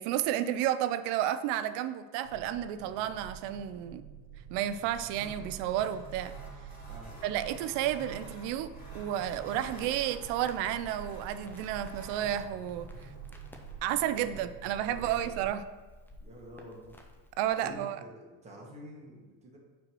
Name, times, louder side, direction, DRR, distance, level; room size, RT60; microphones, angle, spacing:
voice 1, 0.0-4.0 4.5-6.3 7.2-8.7 8.9-12.9 13.8-15.6 17.4-18.0, right 11 dB, 85° right, 12 dB, 0.6 m, -31 dB
sound 1, 2.2-15.5, right 8 dB, 60° right, 1.5 m, -48 dB
sound 2, 4.8-14.2, left 1 dB, 20° left, 2.3 m, -50 dB
voice 2, 6.9-7.2 14.8-15.4 16.2-17.0 17.5-19.6, equal, 15° right, -3 dB, 1.5 m, -49 dB
Crackle, 9.2-17.8, left 1 dB, 5° left, 0.5 m, -56 dB
5.0 x 4.6 x 6.1 m, 1.3 s
cardioid pair, 150°, 41 cm